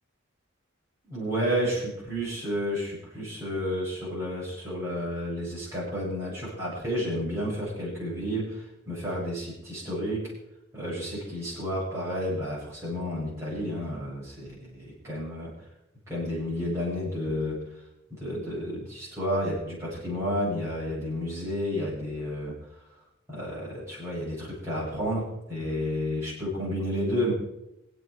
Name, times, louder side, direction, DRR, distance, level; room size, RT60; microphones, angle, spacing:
voice 1, 1.0-10.3 10.7-15.5 16.1-17.6 18.1-22.5 23.3-27.3, equal, 15° right, -8 dB, 7.7 m, -31 dB
26.0 x 8.9 x 4.9 m, 0.86 s
head